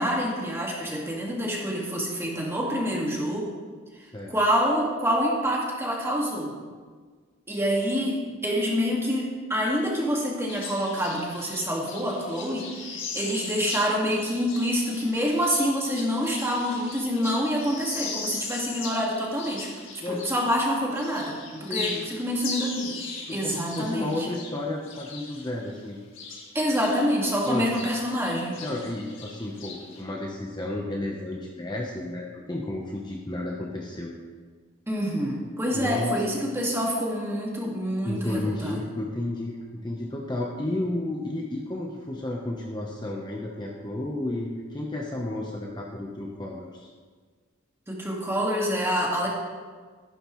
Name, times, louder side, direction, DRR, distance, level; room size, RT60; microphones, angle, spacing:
voice 1, 0.0-3.5 4.3-6.5 7.5-19.7 20.1-23.0 23.3-24.3 26.5-28.6 34.9-38.8 47.9-49.3, equal, 10° right, -3 dB, 1.9 m, -27 dB
sound 1, 10.5-20.6 20.9-27.0 27.3-30.0, left 4 dB, 65° left, 2.0 m, -39 dB
voice 2, 21.5-22.1 23.3-26.0 27.5-27.9 28.6-34.1 35.7-36.2 38.0-39.6 39.8-46.9, left 1 dB, 20° left, -2 dB, 0.9 m, -32 dB
14.5 x 11.0 x 3.2 m, 1.5 s
head